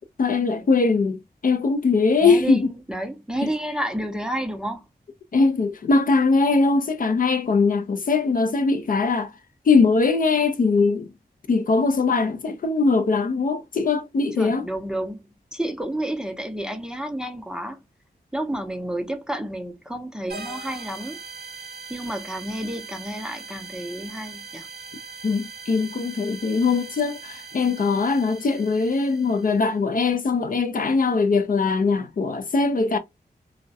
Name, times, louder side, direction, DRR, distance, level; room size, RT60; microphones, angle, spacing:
voice 1, 0.2-2.7 3.4-3.5 5.3-9.3 9.7-11.1 11.5-14.7 25.2-33.0, left 4 dB, 55° left, 0.4 m, -21 dB
voice 2, 2.2-4.8 14.4-15.2 15.5-17.8 18.3-21.2 21.9-24.7, right 1 dB, 5° right, 0.5 m, -30 dB
sound 1, 20.3-29.7, right 5 dB, 70° right, 0.7 m, -40 dB
2.3 x 2.0 x 2.6 m
wide cardioid pair, 80°, 17 cm